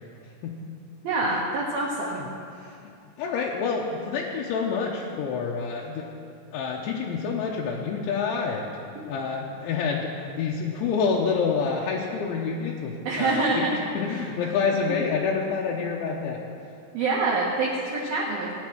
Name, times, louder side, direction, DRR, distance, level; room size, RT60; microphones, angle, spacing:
voice 1, 1.0-2.2 2.6-2.7 13.0-13.6 14.1-14.2 16.9-18.6, right 3 dB, 65° right, -4 dB, 2.5 m, -26 dB
voice 2, 3.2-6.1 6.5-8.7 9.1-13.7 13.9-16.4, left 5 dB, 80° left, -3 dB, 3.0 m, -28 dB
18.0 x 9.7 x 6.1 m, 2.5 s
omnidirectional pair, 6.0 m